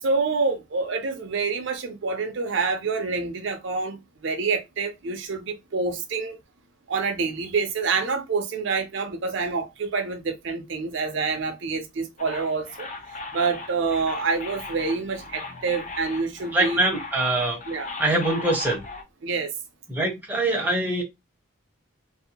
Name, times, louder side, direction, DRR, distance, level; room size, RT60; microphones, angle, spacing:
voice 1, 0.0-6.4 6.9-12.9 13.3-16.8 17.7-17.9 19.2-19.5, right 4 dB, 60° right, 0.5 m, -27 dB
sound 1, 12.2-19.0, left 3 dB, 35° left, 0.5 m, -38 dB
voice 2, 16.5-17.6 18.0-18.8 19.9-21.0, right 2 dB, 10° right, 0.6 m, -23 dB
2.6 x 2.0 x 2.8 m
head